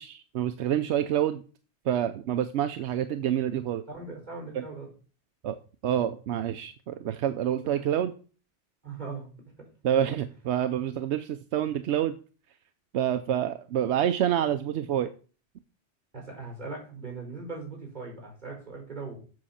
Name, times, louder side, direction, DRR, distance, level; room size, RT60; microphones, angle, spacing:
voice 1, 0.0-1.4 1.9-3.8 4.6-4.7 5.4-5.6 5.8-8.1 9.8-12.1 12.9-15.1, right 10 dB, 85° right, 10 dB, 0.9 m, -27 dB
voice 2, 3.9-4.9 7.6-7.8 8.8-9.3 16.1-19.2, right 3 dB, 40° right, 0 dB, 4.4 m, -39 dB
7.7 x 6.5 x 5.7 m, 0.37 s
omnidirectional pair, 1.1 m